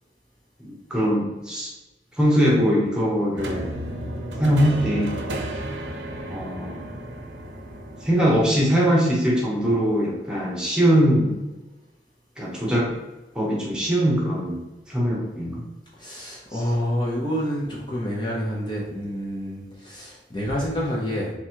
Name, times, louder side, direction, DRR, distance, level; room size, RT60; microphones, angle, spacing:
voice 1, 0.6-1.7 2.2-3.7 4.4-5.2 6.3-6.8 8.0-11.4 12.4-12.9 13.3-14.6 14.9-15.6, equal, 5° right, -4 dB, 1.0 m, -21 dB
sound 1, 3.4-8.6, right 1 dB, 90° right, 0.7 m, -33 dB
voice 2, 16.0-21.3, equal, 25° left, -4 dB, 0.8 m, -28 dB
3.5 x 3.1 x 4.5 m, 1.1 s
head